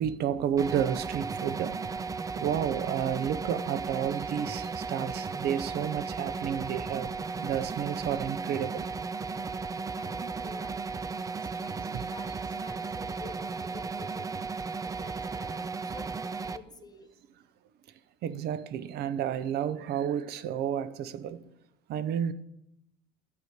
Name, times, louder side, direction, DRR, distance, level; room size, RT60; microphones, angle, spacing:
voice 1, 0.0-2.0 2.4-8.9 11.7-12.1 18.2-21.4 21.9-22.3, right 9 dB, 55° right, 0.6 m, -31 dB
sound 1, 0.6-16.6, right 4 dB, 15° right, 0.4 m, -35 dB
voice 2, 9.9-10.8 11.4-14.4 14.8-17.1, left 4 dB, 20° left, 0.8 m, -50 dB
11.0 x 5.0 x 8.1 m
cardioid pair, 120°, 19 cm